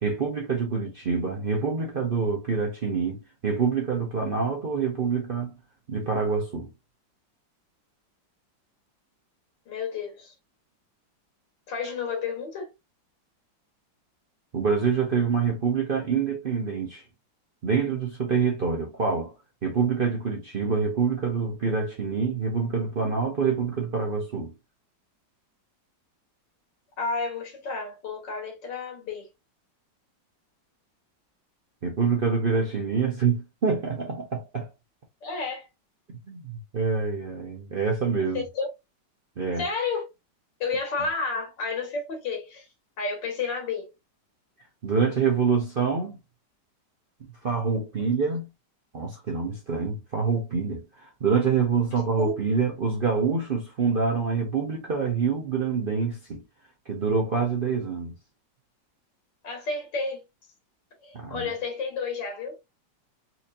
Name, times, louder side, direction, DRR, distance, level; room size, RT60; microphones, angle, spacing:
voice 1, 0.0-5.5 5.9-6.7 14.5-17.0 17.6-19.3 19.6-24.5 31.8-34.7 36.3-38.4 39.4-39.6 44.8-46.2 47.2-48.5 48.9-56.4 56.9-58.1 61.1-61.5, right 5 dB, 50° right, 0.6 m, -26 dB
voice 2, 9.7-10.3 11.7-12.7 27.0-29.3 35.2-35.7 38.3-38.7 39.6-40.0 40.6-42.7 43.0-43.9 52.2-52.4 59.4-60.2 61.0-62.6, left 4 dB, 75° left, 2.0 m, -31 dB
4.3 x 2.8 x 2.6 m
omnidirectional pair, 2.0 m